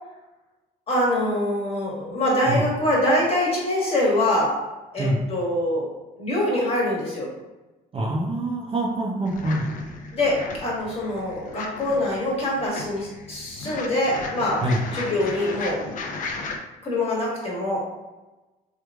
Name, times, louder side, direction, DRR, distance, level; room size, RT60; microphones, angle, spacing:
voice 1, 0.9-4.6 4.9-5.9 6.2-7.3 10.1-14.6 14.9-15.8 16.8-17.8, left 1 dB, 35° left, -4 dB, 1.3 m, -24 dB
voice 2, 7.9-9.6 14.6-14.8, right 1 dB, 35° right, -2 dB, 0.6 m, -25 dB
sound 1, 9.3-16.6, left 3 dB, 50° left, 0.5 m, -35 dB
3.1 x 2.4 x 3.5 m, 1.1 s
cardioid pair, 110°, 17 cm